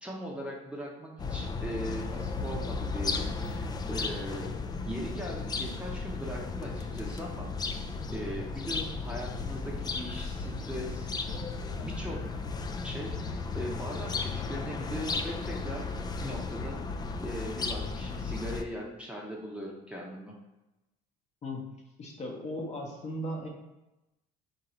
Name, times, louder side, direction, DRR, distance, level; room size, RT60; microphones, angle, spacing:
voice 1, 0.0-4.5 4.8-7.5 8.1-11.1 11.8-12.3 12.8-15.9 16.2-16.9 17.2-20.4, equal, 5° right, -2 dB, 0.8 m, -39 dB
sound 1, 1.2-18.6, left 4 dB, 25° left, 0.4 m, -35 dB
voice 2, 22.0-23.5, equal, 40° left, 0 dB, 1.0 m, -37 dB
3.7 x 2.6 x 4.3 m, 1.0 s
supercardioid pair, 90°, 18 cm